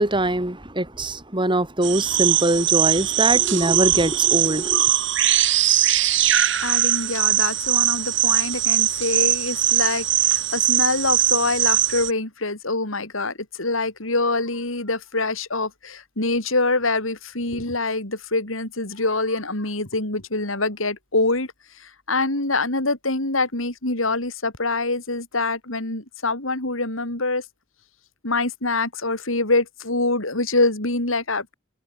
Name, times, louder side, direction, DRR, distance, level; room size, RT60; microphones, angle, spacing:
voice 1, 0.0-4.9, right 1 dB, 25° right, 4.1 m, -22 dB
sound 1, 1.8-12.1, right 12 dB, 65° right, 4.0 m, -21 dB
voice 2, 6.6-21.5 21.8-27.4 28.2-31.5, left 2 dB, 90° left, 5.6 m, -25 dB
head